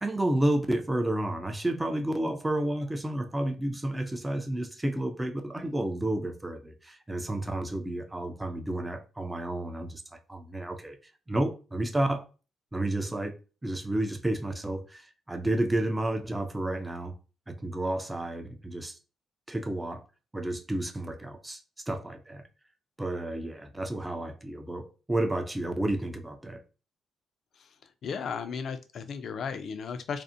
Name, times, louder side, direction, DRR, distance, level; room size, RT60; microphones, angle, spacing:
voice 1, 0.0-10.0 10.3-11.0 11.3-12.2 12.7-17.1 17.5-19.0 19.5-20.0 20.3-21.6 21.9-22.4 23.0-26.6, right 1 dB, 10° right, 0.4 m, -31 dB
voice 2, 28.0-30.2, left 6 dB, 60° left, 0.3 m, -35 dB
2.4 x 2.0 x 2.6 m
cardioid pair, 90°, 0 cm